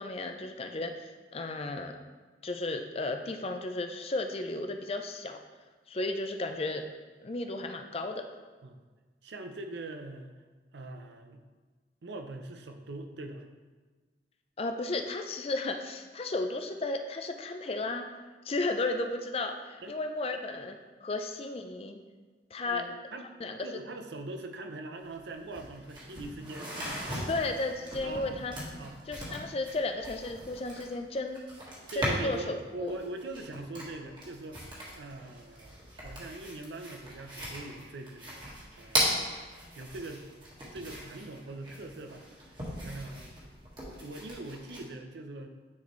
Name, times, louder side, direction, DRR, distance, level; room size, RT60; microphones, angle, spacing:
voice 1, 0.0-2.0 2.4-5.4 5.9-6.9 7.2-8.3 14.6-18.1 18.4-22.0 22.5-22.8 23.4-23.8 27.3-28.5 29.1-31.4 31.9-33.0, left 2 dB, 35° left, 5 dB, 0.4 m, -34 dB
voice 2, 9.2-10.3 10.7-11.4 12.0-13.5 19.8-20.0 21.1-21.2 22.6-27.0 28.0-28.4 28.8-29.0 29.2-29.5 31.9-34.6 34.9-39.2 39.7-40.3 40.7-42.3 42.8-43.4 44.0-45.5, right 2 dB, 80° right, 6 dB, 0.6 m, -42 dB
sound 1, 25.0-25.1 25.3-32.5 32.9-44.8, equal, 25° right, 1.5 m, -38 dB
9.6 x 4.2 x 3.1 m, 1.3 s
head